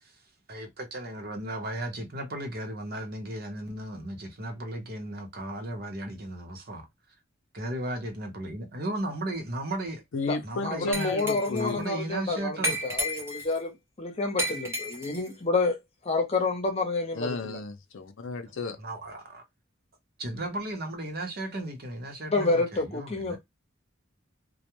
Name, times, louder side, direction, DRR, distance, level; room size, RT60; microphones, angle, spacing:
voice 1, 0.5-6.9 7.5-10.0 10.4-11.1 11.5-12.8 18.8-19.4 20.2-23.4, right 1 dB, 50° right, 0.8 m, -35 dB
voice 2, 10.1-11.9 17.1-18.8, left 3 dB, 75° left, 0.5 m, -33 dB
voice 3, 10.6-17.6 22.3-23.4, left 3 dB, 30° left, 0.7 m, -29 dB
Glass, 10.9-11.7 12.6-13.6 14.4-15.3, equal, 15° right, 0.7 m, -32 dB
2.3 x 2.1 x 2.9 m
head